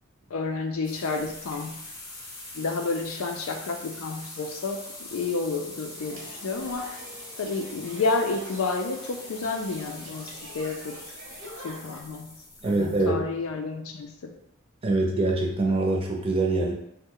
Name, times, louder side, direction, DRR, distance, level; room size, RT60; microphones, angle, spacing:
voice 1, 0.3-1.8 2.5-6.9 7.4-11.0 11.6-12.3 12.6-14.3, left 3 dB, 90° left, 4 dB, 0.5 m, -30 dB
sound 1, 0.8-13.0, left 2 dB, 20° left, 0.7 m, -43 dB
sound 2, 5.9-12.0, right 2 dB, 60° right, 0.8 m, -46 dB
voice 2, 12.6-13.2 14.8-16.7, right 2 dB, 25° right, -1 dB, 0.6 m, -24 dB
3.1 x 2.1 x 3.6 m, 0.79 s
head